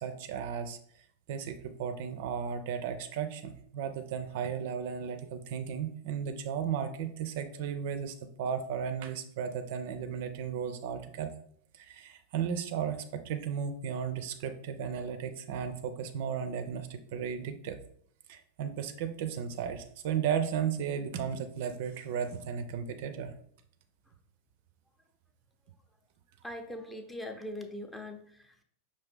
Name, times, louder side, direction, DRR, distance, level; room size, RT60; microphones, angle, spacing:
voice 1, 0.0-0.8 1.3-11.3 11.7-17.8 18.3-23.3, right 7 dB, 50° right, 9 dB, 0.4 m, -35 dB
voice 2, 26.4-28.6, left 1 dB, 10° left, 5 dB, 0.5 m, -41 dB
5.4 x 2.6 x 3.6 m, 0.63 s
figure-of-eight pair, 90°, 0 cm